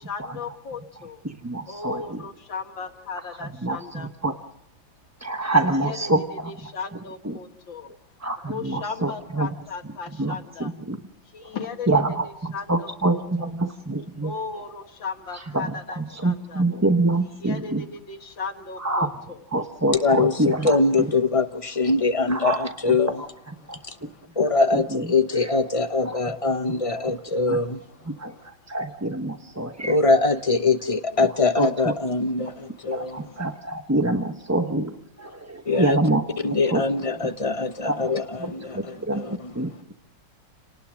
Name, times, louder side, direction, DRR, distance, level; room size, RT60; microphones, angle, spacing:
voice 1, 0.0-1.2 1.7-4.1 5.6-7.9 8.5-10.7 11.2-13.5 14.2-16.6 17.4-19.4, left 5 dB, 75° left, 2.4 m, -36 dB
voice 2, 1.2-2.2 3.4-4.4 5.2-6.7 7.2-7.4 8.2-9.5 10.2-11.0 11.9-12.3 12.7-14.3 15.3-17.8 18.8-19.1 19.5-21.1 21.9-22.0 22.3-23.8 24.4-25.6 26.0-27.1 27.5-27.6 28.0-30.0 31.5-31.9 32.9-36.8 37.1-37.3 37.8-39.7, right 2 dB, 15° right, 0.7 m, -27 dB
voice 3, 20.0-20.3 20.6-23.1 24.4-27.8 29.8-33.2 35.7-36.0 36.4-38.2 38.5-39.4, left 3 dB, 35° left, 0.5 m, -22 dB
30.0 x 19.0 x 6.4 m
omnidirectional pair, 2.1 m